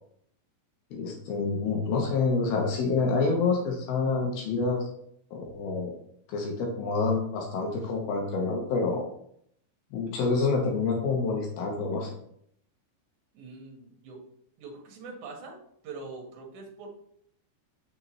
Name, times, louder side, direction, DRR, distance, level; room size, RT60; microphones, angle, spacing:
voice 1, 0.9-4.8 5.3-6.0 6.3-9.1 9.9-12.1, left 4 dB, 70° left, 1 dB, 2.6 m, -27 dB
voice 2, 13.3-14.2 14.6-16.9, right 3 dB, 60° right, 0 dB, 2.3 m, -43 dB
6.7 x 6.7 x 3.1 m, 0.68 s
omnidirectional pair, 5.3 m